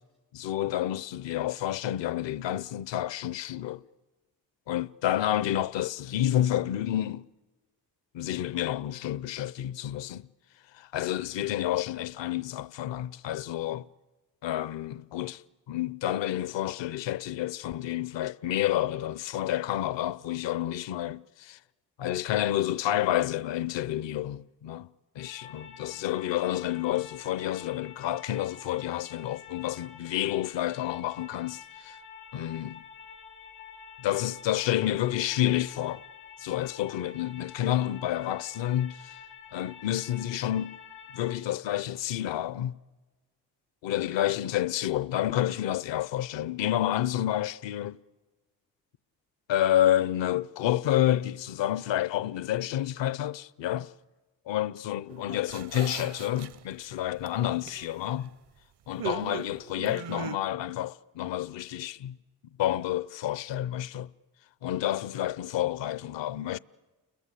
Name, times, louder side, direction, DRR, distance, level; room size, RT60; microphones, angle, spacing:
voice 1, 0.3-3.8 4.7-7.3 8.1-10.3 10.7-13.9 14.4-15.4 15.7-21.6 22.0-32.0 32.3-32.8 34.0-36.0 36.4-39.2 39.5-40.8 41.1-42.8 43.8-48.0 49.5-53.9 54.5-58.4 58.9-62.2 62.6-64.1 64.6-66.6, left 12 dB, 70° left, 0.8 m, -29 dB
sound 1, 25.2-41.4, left 7 dB, 90° left, 3.7 m, -48 dB
sound 2, 55.1-56.8 57.2-58.3 59.0-60.4, right 7 dB, 60° right, 0.8 m, -38 dB
30.0 x 21.5 x 8.3 m
supercardioid pair, 50°, 45 cm